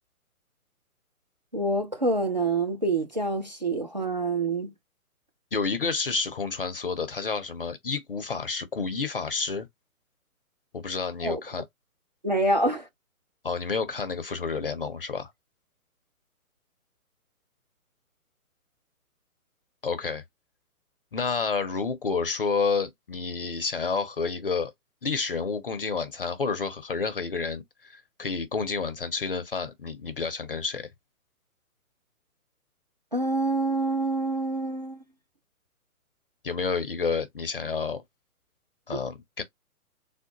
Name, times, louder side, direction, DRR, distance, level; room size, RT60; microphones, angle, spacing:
voice 1, 1.5-4.7 11.2-11.4 12.2-12.9 33.1-35.0, right 2 dB, 35° right, 0.4 m, -26 dB
voice 2, 5.5-9.7 10.7-11.6 13.4-15.3 19.8-20.2 21.1-24.7 25.0-30.9 36.4-38.0 38.9-39.4, left 4 dB, 40° left, 0.5 m, -30 dB
3.5 x 2.1 x 2.8 m
figure-of-eight pair, 135°, 44 cm